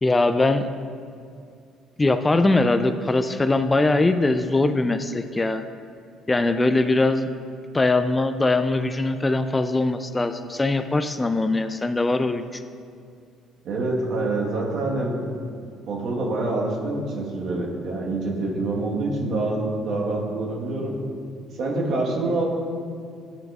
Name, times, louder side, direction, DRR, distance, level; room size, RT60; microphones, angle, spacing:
voice 1, 0.0-0.6 2.0-5.6 6.3-7.3 7.7-12.6, left 2 dB, 20° left, 9 dB, 0.3 m, -21 dB
voice 2, 13.6-15.1 15.9-21.0 21.6-22.4, right 2 dB, 65° right, -2 dB, 1.3 m, -26 dB
10.0 x 5.8 x 2.4 m, 2.3 s
hypercardioid pair, 65°, 0 cm